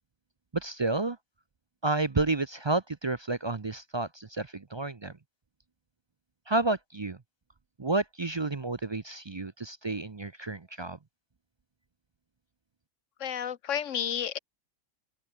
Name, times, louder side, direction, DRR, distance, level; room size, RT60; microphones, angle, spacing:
voice 1, 0.5-1.2 1.8-5.1 6.5-7.2 7.8-11.0, right 2 dB, 30° right, 0.5 m, -30 dB
voice 2, 13.2-14.4, left 9 dB, 70° left, 1.3 m, -31 dB
open air
omnidirectional pair, 1.3 m